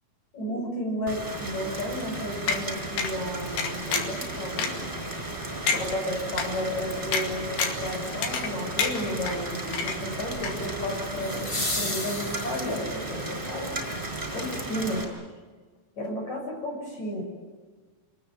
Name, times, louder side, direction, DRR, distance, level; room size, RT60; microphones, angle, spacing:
voice 1, 0.3-4.7 5.7-13.7 14.3-15.1 16.0-17.2, equal, 50° left, 1 dB, 8.3 m, -33 dB
Rain, 1.1-15.0, right 2 dB, 15° right, 4.9 m, -34 dB
sound 1, 2.5-2.6 3.0-3.1 3.6-4.2 4.6-4.7 5.2-5.3 5.7-5.8 6.4-6.5 7.1-7.3 7.6-7.9 8.2-8.5 8.8-9.4 9.7-10.2 10.4-10.5, left 5 dB, 85° left, 4.2 m, -27 dB
sound 2, 5.6-5.7 11.2-13.0 15.2-15.3, left 2 dB, 30° left, 0.8 m, -33 dB
26.5 x 20.0 x 9.1 m, 1.4 s
omnidirectional pair, 4.3 m